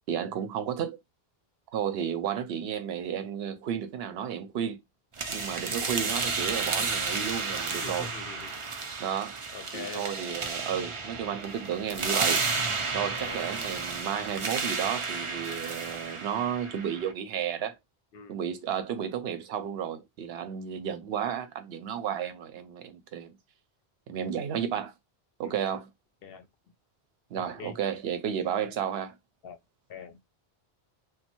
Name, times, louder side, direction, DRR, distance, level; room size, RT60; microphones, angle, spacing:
voice 1, 0.1-1.0 1.7-4.8 5.3-8.1 9.0-9.4 9.7-12.4 12.9-17.8 18.3-23.4 24.1-24.9 25.4-25.9 27.3-29.1, right 8 dB, 80° right, 0.8 m, -32 dB
sound 1, 5.2-17.1, right 4 dB, 40° right, 0.4 m, -32 dB
voice 2, 7.8-8.5 9.5-10.1 13.0-13.5 18.1-18.4 25.4-25.5 26.2-26.5 27.4-27.8 29.4-29.6 29.9-30.2, left 6 dB, 70° left, 0.8 m, -43 dB
3.1 x 2.1 x 2.9 m
omnidirectional pair, 1.0 m